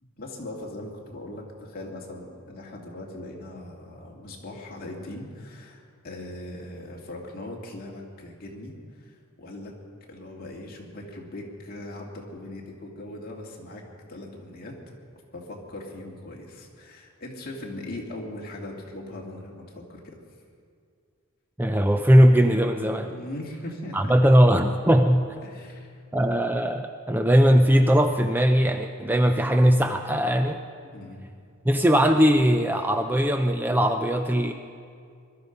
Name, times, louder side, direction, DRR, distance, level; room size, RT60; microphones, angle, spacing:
voice 1, 0.2-9.7 10.1-13.8 14.1-14.7 15.3-20.2 23.0-24.1 25.4-26.0 30.9-31.3, left 1 dB, 45° left, -1 dB, 2.5 m, -40 dB
voice 2, 21.6-23.1 23.9-25.3 26.1-30.6 31.7-34.5, equal, 10° right, 6 dB, 0.4 m, -20 dB
21.5 x 12.5 x 5.3 m, 2.3 s
head